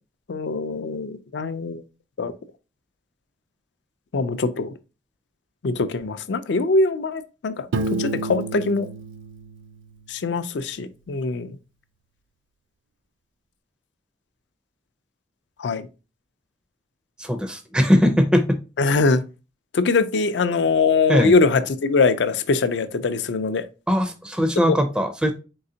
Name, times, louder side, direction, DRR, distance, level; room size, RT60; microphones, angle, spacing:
voice 1, 0.3-1.8 2.2-2.3 4.1-4.7 5.6-8.9 10.1-11.6 15.6-15.9 18.8-19.2 19.7-23.7 24.7-24.8, left 3 dB, 65° left, 0.4 m, -22 dB
Piano, 7.7-10.5, right 3 dB, 85° right, 0.4 m, -30 dB
voice 2, 17.2-18.6 21.1-21.3 23.9-25.3, equal, 5° right, 0.4 m, -20 dB
4.2 x 3.8 x 2.7 m
head